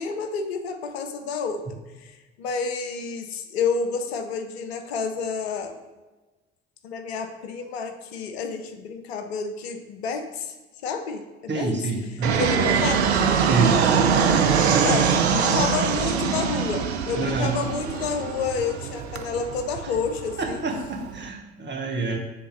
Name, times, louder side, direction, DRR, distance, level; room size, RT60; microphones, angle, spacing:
voice 1, 0.0-1.7 2.0-5.8 6.8-10.5 10.8-11.8 12.4-13.2 14.6-20.6, left 5 dB, 80° left, 8 dB, 0.7 m, -30 dB
voice 2, 11.5-12.4 13.4-13.8 17.1-17.6 20.4-22.2, right 3 dB, 35° right, 1 dB, 1.7 m, -27 dB
Fixed-wing aircraft airplane, 12.2-21.2, right 6 dB, 85° right, 0.5 m, -23 dB
7.6 x 3.6 x 6.4 m, 1.2 s
figure-of-eight pair, 50°, 31 cm